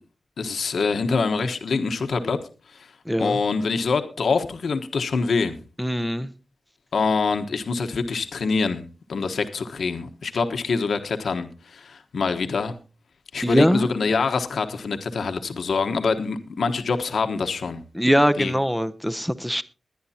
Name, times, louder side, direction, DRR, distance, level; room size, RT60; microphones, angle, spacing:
voice 1, 0.4-2.4 2.7-2.9 3.2-5.6 6.9-8.8 9.1-12.7 13.3-17.8 18.4-18.5, left 4 dB, 80° left, 1.2 m, -25 dB
voice 2, 3.1-3.4 5.8-6.3 13.4-13.9 17.9-19.6, equal, ahead, 0.8 m, -22 dB
21.0 x 10.5 x 2.8 m
wide cardioid pair, 90°, 0 cm